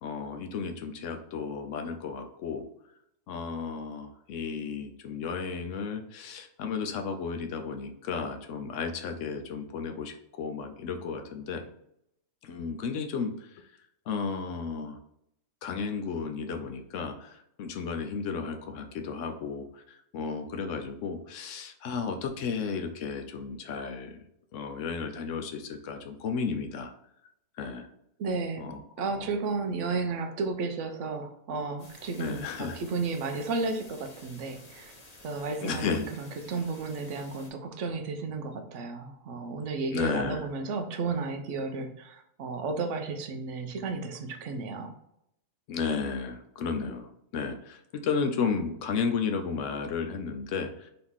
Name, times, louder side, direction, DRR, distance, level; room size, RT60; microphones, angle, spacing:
voice 1, 0.0-2.6 3.3-11.7 12.4-13.5 14.1-15.0 15.6-24.2 24.5-26.9 27.6-27.9 28.6-29.3 32.2-32.8 35.6-36.1 39.9-40.5 45.7-50.9, left 5 dB, 70° left, 5 dB, 0.9 m, -33 dB
voice 2, 28.2-28.7 29.0-34.9 35.2-35.9 36.2-44.9, right 4 dB, 70° right, 6 dB, 1.0 m, -33 dB
sound 1, 31.8-37.5, left 2 dB, 35° left, 1.0 m, -52 dB
4.0 x 2.9 x 3.6 m, 0.76 s
omnidirectional pair, 1.4 m